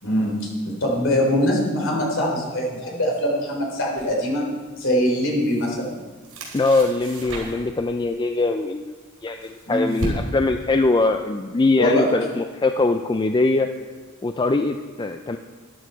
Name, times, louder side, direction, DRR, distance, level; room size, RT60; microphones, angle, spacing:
voice 1, 0.0-4.4 4.8-5.9 9.7-9.9 11.8-12.0, equal, 60° left, -2 dB, 3.7 m, -22 dB
sound 1, 4.0-4.2 5.1-5.9 6.2-7.8 8.9-10.6, right 1 dB, 75° right, 4.0 m, -33 dB
voice 2, 6.5-8.9 9.2-13.7 14.2-15.4, left 3 dB, 20° left, 7 dB, 0.3 m, -22 dB
12.5 x 11.0 x 4.6 m, 1.4 s
head